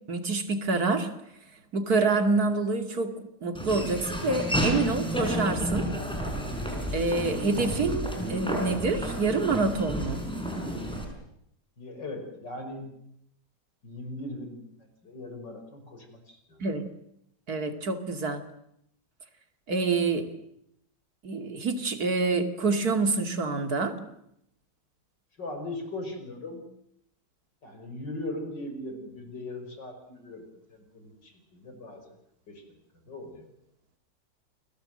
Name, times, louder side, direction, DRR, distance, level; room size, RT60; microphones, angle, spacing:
voice 1, 0.1-1.1 1.7-3.1 3.4-5.9 6.9-10.2 16.6-16.9 17.5-18.4 19.7-20.3 21.2-24.0, right 3 dB, 55° right, 6 dB, 2.9 m, -27 dB
Laughter / Walk footsteps, 3.5-11.0, equal, 5° left, 6.0 m, -31 dB
voice 2, 11.8-12.9 13.8-16.6 25.4-26.6 27.6-32.2 32.5-32.6 32.9-33.5, left 2 dB, 75° left, 6 dB, 6.0 m, -39 dB
29.0 x 21.5 x 7.8 m, 0.75 s
omnidirectional pair, 1.9 m